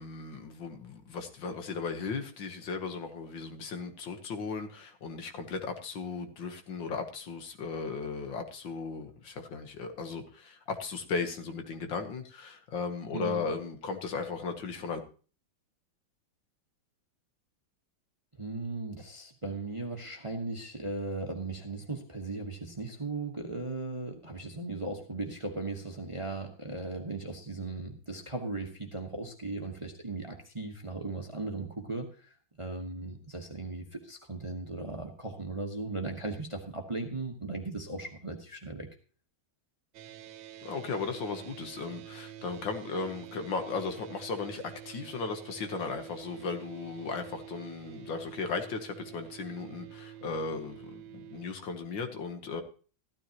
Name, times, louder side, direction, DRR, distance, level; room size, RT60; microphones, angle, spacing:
voice 1, 0.0-15.0 40.6-52.6, left 4 dB, 70° left, 6 dB, 1.9 m, -36 dB
voice 2, 13.1-13.5 18.4-38.9, right 2 dB, 20° right, 3 dB, 1.0 m, -37 dB
sound 1, 39.9-51.5, right 12 dB, 75° right, 1.5 m, -48 dB
15.0 x 12.5 x 2.9 m, 0.38 s
omnidirectional pair, 2.2 m